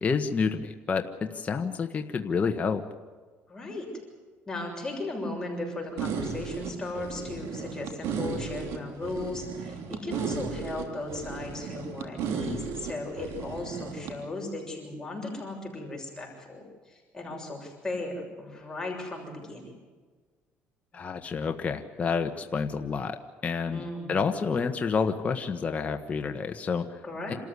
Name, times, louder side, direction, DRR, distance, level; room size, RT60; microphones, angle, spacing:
voice 1, 0.0-2.8 20.9-23.8 24.1-27.0 27.3-27.4, left 5 dB, 30° left, 5 dB, 1.3 m, -29 dB
voice 2, 3.5-3.9 4.5-19.7 23.7-24.3 27.0-27.4, left 2 dB, 15° left, -1 dB, 6.6 m, -36 dB
sound 1, 6.0-14.1, right 6 dB, 80° right, 3.2 m, -35 dB
27.5 x 14.0 x 9.7 m, 1.5 s
cardioid pair, 105°, 5 cm